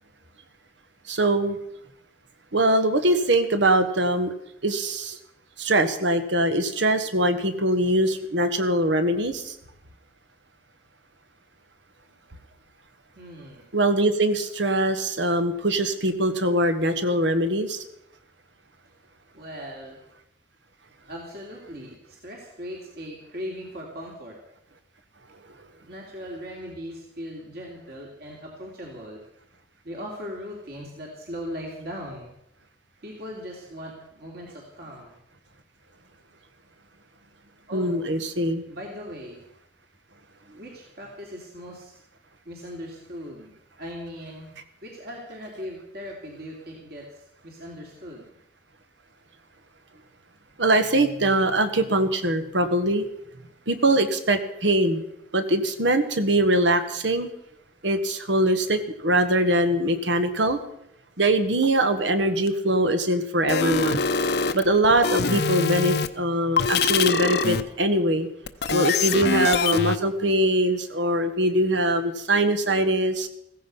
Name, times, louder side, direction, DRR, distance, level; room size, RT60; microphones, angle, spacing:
voice 1, 1.1-1.6 2.5-4.3 4.6-5.2 5.6-9.5 13.7-17.8 37.7-38.6 50.6-53.0 53.7-55.0 55.3-57.3 57.8-60.6 61.2-64.0 64.5-68.3 68.7-73.3, right 1 dB, 85° right, 9 dB, 1.6 m, -22 dB
voice 2, 13.1-13.6 19.3-20.0 21.1-24.4 25.8-29.2 29.8-32.3 33.0-35.2 37.7-37.9 38.7-39.4 40.5-42.0 42.4-43.5 43.8-44.5 44.8-48.2, equal, 60° right, -1 dB, 3.1 m, -39 dB
sound 1, 62.5-62.6 63.5-66.1 66.6-67.6 68.5-70.0, left 5 dB, 60° left, 0.8 m, -24 dB
15.5 x 15.0 x 5.6 m, 0.78 s
head